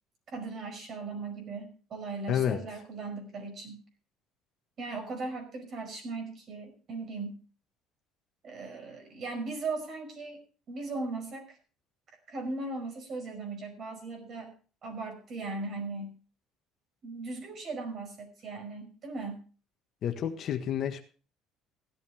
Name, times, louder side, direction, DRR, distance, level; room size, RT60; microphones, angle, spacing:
voice 1, 0.3-3.8 4.8-7.4 8.4-10.4 10.7-11.5 12.3-14.5 14.8-16.2 17.0-19.4, right 3 dB, 40° right, 5 dB, 5.2 m, -38 dB
voice 2, 2.3-2.6 20.0-21.0, left 9 dB, 45° left, 6 dB, 1.5 m, -29 dB
16.0 x 12.0 x 3.5 m, 0.38 s
cardioid pair, 145°, 0 cm